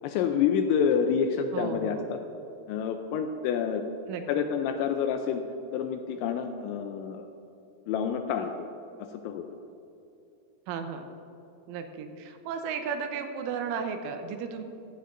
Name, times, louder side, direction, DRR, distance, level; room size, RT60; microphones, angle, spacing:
voice 1, 0.0-2.2 2.7-3.8 4.3-5.4 5.7-7.3 7.9-8.7 9.0-9.4, left 7 dB, 85° left, 6 dB, 2.6 m, -28 dB
voice 2, 1.5-2.1 4.1-4.5 10.7-11.1 11.7-14.6, right 6 dB, 80° right, 6 dB, 3.2 m, -34 dB
15.0 x 15.0 x 2.6 m, 2.7 s
omnidirectional pair, 5.8 m